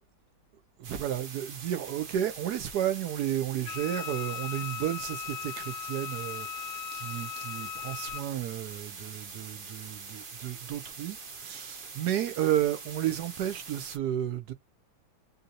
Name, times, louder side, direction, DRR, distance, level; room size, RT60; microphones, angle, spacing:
sound 1, 0.8-14.0, right 5 dB, 50° right, 0.6 m, -44 dB
voice 1, 0.8-14.5, right 11 dB, 70° right, 0.9 m, -32 dB
Wind instrument woodwind instrument, 3.7-8.3, left 10 dB, 70° left, 1.1 m, -38 dB
3.8 x 2.7 x 2.6 m
omnidirectional pair, 2.2 m